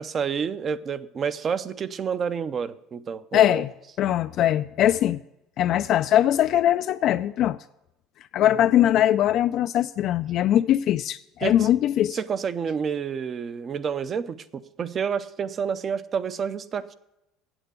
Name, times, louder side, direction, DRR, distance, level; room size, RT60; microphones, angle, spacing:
voice 1, 0.0-3.6 8.4-8.5 11.4-11.7 12.1-16.9, right 6 dB, 35° right, 0.6 m, -29 dB
voice 2, 3.3-3.7 4.0-5.2 5.6-7.6 8.3-12.2, left 12 dB, 55° left, 0.3 m, -21 dB
8.9 x 8.0 x 8.0 m
cardioid pair, 125°, 0 cm